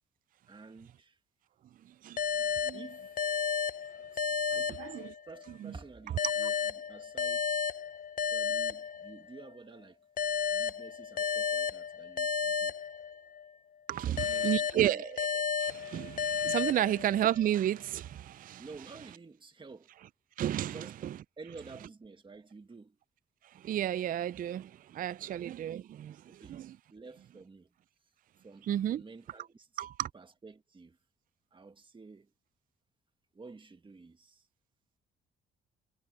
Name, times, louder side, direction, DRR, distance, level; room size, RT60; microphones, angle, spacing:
voice 1, 0.5-1.2 2.7-3.2 4.1-4.3 4.5-4.9 5.3-7.7 8.3-10.0 10.5-12.7 14.0-15.0 16.7-17.0 18.6-19.9 20.6-21.0 21.4-23.0 25.2-25.4 26.4-26.6 26.9-27.7 28.4-29.8 30.1-31.0 31.5-32.3 33.3-34.5, right 4 dB, 25° right, 1.7 m, -51 dB
sound 1, 2.2-5.5 6.2-9.5 10.2-13.5 14.2-17.5, left 7 dB, 45° left, 0.7 m, -33 dB
voice 2, 4.8-5.1 5.6-5.7 13.9-15.3 15.6-18.6 20.4-21.2 23.6-26.8 28.7-29.0 29.8-30.1, right 11 dB, 45° right, 0.4 m, -32 dB
cardioid pair, 90°, 20 cm